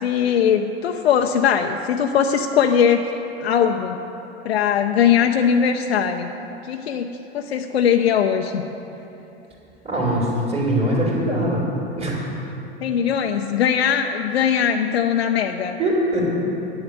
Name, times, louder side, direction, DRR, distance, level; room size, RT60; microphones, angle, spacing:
voice 1, 0.0-4.0 4.4-6.3 6.6-8.6 12.8-15.8, left 8 dB, 90° left, 4 dB, 0.6 m, -20 dB
voice 2, 9.8-11.6 12.0-12.2 15.8-16.3, right 1 dB, 20° right, -4 dB, 3.0 m, -22 dB
9.7 x 7.2 x 8.1 m, 3.0 s
hypercardioid pair, 100°, 31 cm